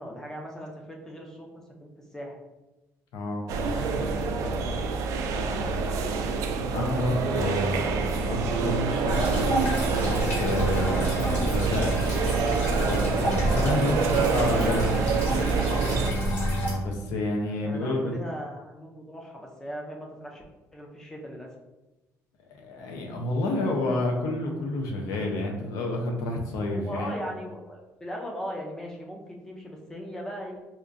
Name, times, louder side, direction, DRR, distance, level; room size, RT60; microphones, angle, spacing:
voice 1, 0.0-1.5 1.8-2.4 3.7-4.9 5.2-5.8 13.8-14.3 17.6-20.4 20.7-21.5 26.7-30.6, equal, 10° left, 0 dB, 0.5 m, -39 dB
voice 2, 3.1-3.5 6.7-9.2 10.0-12.0 12.8-15.0 16.0-18.1 22.6-27.1, left 1 dB, 80° left, 2 dB, 0.6 m, -29 dB
sound 1, 3.5-16.1, right 4 dB, 70° right, 0.4 m, -26 dB
sound 2, 9.1-16.7, equal, 40° left, 1.1 m, -30 dB
4.3 x 2.4 x 2.5 m, 1.0 s
cardioid pair, 180°, 6 cm